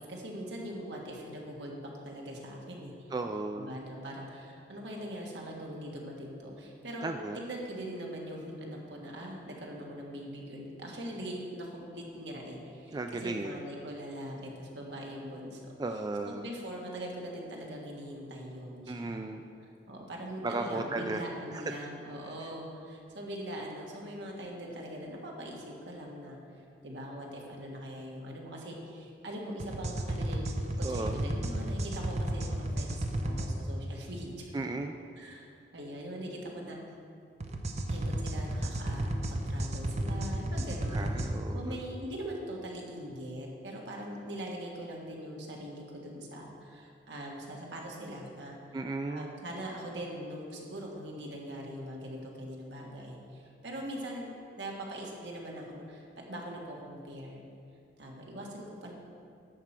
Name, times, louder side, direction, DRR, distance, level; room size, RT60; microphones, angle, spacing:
voice 1, 0.1-2.9 3.6-7.1 7.3-15.6 16.2-19.2 19.9-30.4 30.8-34.5 35.2-35.5 35.7-36.8 37.9-41.2 41.5-48.6 49.1-54.3 54.6-57.4 58.0-58.9, equal, 70° right, -1 dB, 1.6 m, -42 dB
voice 2, 3.1-3.8 7.0-7.4 12.9-13.6 15.8-16.5 18.9-19.4 20.4-21.2 21.5-21.6 30.8-31.2 34.5-34.9 40.9-41.8 48.7-49.3, right 2 dB, 20° right, 5 dB, 0.3 m, -35 dB
sound 1, 29.6-33.5 37.4-41.3, right 1 dB, 40° right, 0.7 m, -33 dB
11.0 x 7.3 x 4.5 m, 2.5 s
head